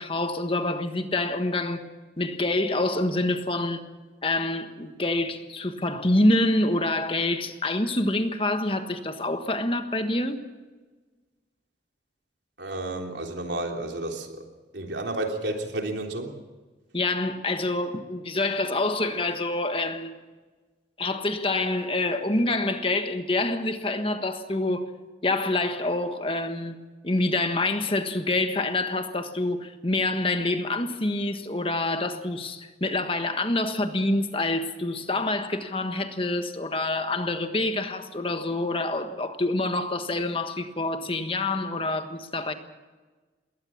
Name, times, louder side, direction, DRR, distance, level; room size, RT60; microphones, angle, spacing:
voice 1, 0.0-1.8 2.2-3.8 4.2-10.4 16.9-20.2 21.0-24.9 25.2-26.8 27.0-42.5, left 2 dB, 30° left, 1.5 m, -26 dB
voice 2, 12.6-14.4 14.7-16.3, right 2 dB, 75° right, 3.3 m, -31 dB
21.0 x 18.0 x 7.3 m
head